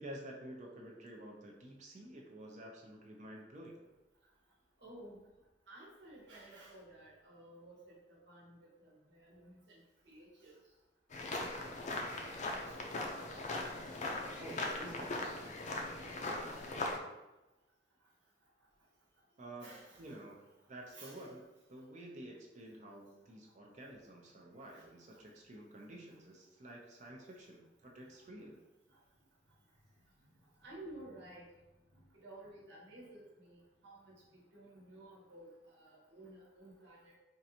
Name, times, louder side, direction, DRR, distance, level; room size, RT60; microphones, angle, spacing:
voice 1, 0.0-3.8 14.4-15.2 19.4-20.4 20.7-21.4 21.7-28.6, right 1 dB, 40° right, -1 dB, 0.6 m, -50 dB
voice 2, 4.8-5.2 5.7-8.0 8.2-9.8 10.1-10.6 12.7-12.8 19.6-20.2 20.9-21.3 30.6-31.4 32.2-35.4 35.8-37.2, right 1 dB, 75° right, -4 dB, 1.2 m, -54 dB
sound 1, 11.1-17.0, left 2 dB, 40° left, 0.5 m, -39 dB
4.5 x 2.5 x 2.8 m, 1.0 s
head